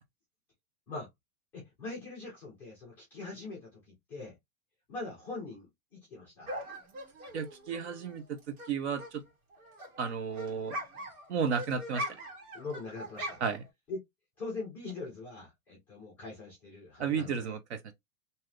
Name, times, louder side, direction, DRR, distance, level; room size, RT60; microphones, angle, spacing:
voice 1, 1.5-4.4 4.9-6.5 12.5-13.4 13.9-14.0 14.4-17.6, left 3 dB, 5° left, 0.5 m, -42 dB
sound 1, 6.5-8.7 9.0-13.7, equal, 85° right, 1.6 m, -42 dB
voice 2, 7.3-9.2 10.0-10.8 11.3-12.1 13.4-13.6 17.0-17.9, right 6 dB, 50° right, 0.7 m, -33 dB
2.7 x 2.4 x 3.2 m
supercardioid pair, 175°, 43 cm